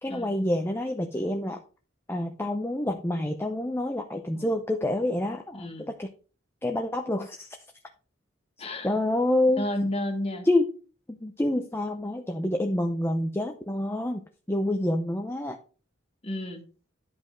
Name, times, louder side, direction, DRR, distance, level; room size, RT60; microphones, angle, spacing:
voice 1, 0.0-1.6 2.1-6.1 6.6-7.6 8.8-9.7 10.4-10.7 11.1-14.2 14.5-15.6, left 1 dB, 10° left, 4 dB, 0.6 m, -27 dB
voice 2, 5.5-5.9 8.6-8.9 9.6-10.4 16.2-16.6, left 1 dB, 30° left, 4 dB, 1.7 m, -32 dB
10.5 x 5.2 x 3.9 m, 0.38 s
head